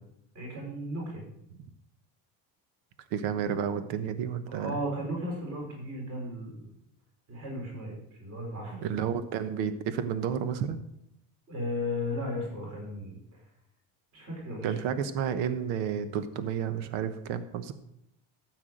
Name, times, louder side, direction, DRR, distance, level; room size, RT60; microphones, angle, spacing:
voice 1, 0.3-1.2 3.4-3.5 4.5-6.7 7.3-8.9 11.5-13.2 14.1-14.7, left 1 dB, 40° right, -2 dB, 4.9 m, -35 dB
voice 2, 3.1-4.8 8.7-10.8 14.6-17.7, right 8 dB, 85° right, 11 dB, 1.1 m, -31 dB
13.5 x 4.7 x 7.8 m, 0.77 s
cardioid pair, 180°, 41 cm